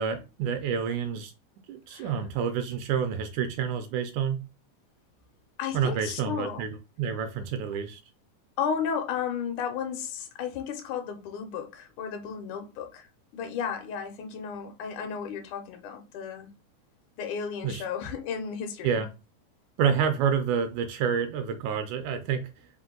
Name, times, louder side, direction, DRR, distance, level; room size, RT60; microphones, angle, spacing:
voice 1, 0.0-1.3 1.7-4.4 5.7-8.0 17.6-17.8 18.8-19.1 19.8-22.4, right 7 dB, 80° right, 1.8 m, -28 dB
voice 2, 5.6-6.6 8.6-16.5 17.2-19.0, left 7 dB, 75° left, 2.0 m, -33 dB
5.2 x 2.1 x 3.7 m
omnidirectional pair, 3.7 m